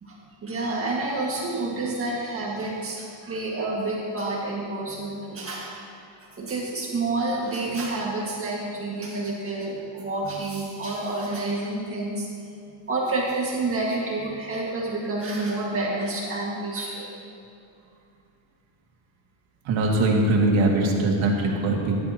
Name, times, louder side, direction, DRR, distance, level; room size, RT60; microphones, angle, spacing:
voice 1, 0.4-5.7 6.4-12.3 12.9-17.1, right 2 dB, 30° right, -4 dB, 1.8 m, -29 dB
voice 2, 19.7-22.0, right 2 dB, 75° right, -1 dB, 2.1 m, -21 dB
15.5 x 10.5 x 2.9 m, 2.6 s
cardioid pair, 160°, 47 cm